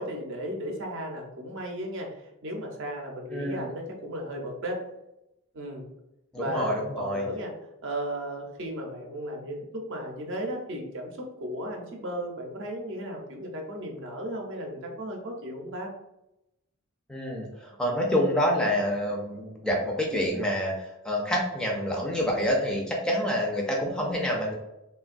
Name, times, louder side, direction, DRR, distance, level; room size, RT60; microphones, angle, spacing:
voice 1, 0.0-4.8 5.5-5.9 6.4-7.5 7.8-15.9, equal, 60° right, 1 dB, 0.6 m, -35 dB
voice 2, 3.3-3.7 6.3-7.2 17.1-20.8 21.0-24.5, equal, 5° left, -1 dB, 0.3 m, -27 dB
3.2 x 2.2 x 2.4 m, 0.88 s
head